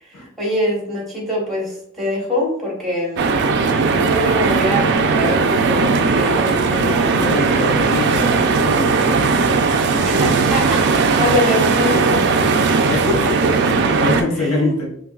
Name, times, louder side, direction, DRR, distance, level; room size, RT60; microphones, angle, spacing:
voice 1, 0.0-3.4 3.9-7.6 10.0-12.6 12.9-13.8 14.3-14.7, left 1 dB, ahead, -4 dB, 1.1 m, -24 dB
sound 1, 3.2-14.2, right 4 dB, 55° right, 0.3 m, -17 dB
voice 2, 7.1-9.6 12.8-13.2 13.9-14.9, left 2 dB, 85° left, -2 dB, 1.0 m, -24 dB
3.6 x 2.6 x 2.3 m, 0.68 s
head